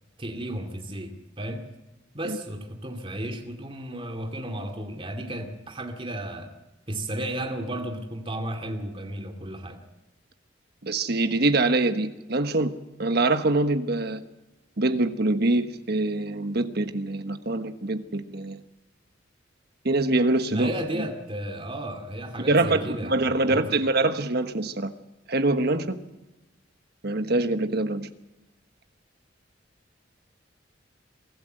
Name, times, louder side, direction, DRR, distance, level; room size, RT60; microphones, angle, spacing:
voice 1, 0.2-1.7 2.1-6.5 6.9-9.8 20.5-23.8, right 1 dB, 30° right, 3 dB, 2.3 m, -33 dB
voice 2, 10.8-12.7 13.0-14.2 14.8-18.6 19.8-21.0 22.5-24.9 25.3-26.0 27.0-28.1, right 2 dB, 55° right, 9 dB, 1.3 m, -24 dB
23.5 x 14.0 x 7.9 m, 1.0 s
head